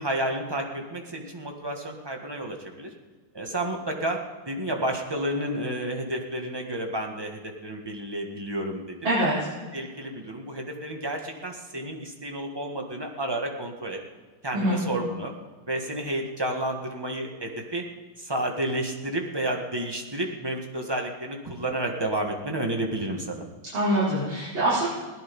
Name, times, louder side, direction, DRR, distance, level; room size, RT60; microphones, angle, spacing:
voice 1, 0.0-2.9 3.3-4.2 4.4-9.1 9.7-14.0 14.4-15.3 15.7-17.8 18.2-23.4, right 1 dB, 15° right, 2 dB, 1.5 m, -31 dB
voice 2, 9.0-9.4 14.5-14.8 23.7-24.9, right 1 dB, 60° right, -11 dB, 5.7 m, -24 dB
17.5 x 12.0 x 5.4 m, 1.4 s
omnidirectional pair, 2.4 m